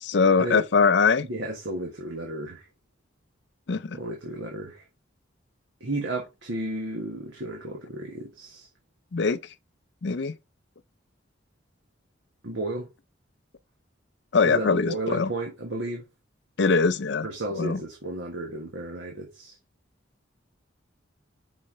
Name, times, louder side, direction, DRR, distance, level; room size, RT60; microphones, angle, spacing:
voice 1, 0.0-1.3 3.7-4.0 9.1-9.4 10.0-10.3 14.3-15.3 16.6-17.3 17.6-17.8, left 4 dB, 60° left, 0.5 m, -22 dB
voice 2, 1.3-2.7 3.9-4.8 5.8-8.7 12.4-12.9 14.4-16.0 17.2-19.5, right 2 dB, 70° right, 1.5 m, -33 dB
5.5 x 4.2 x 4.8 m
head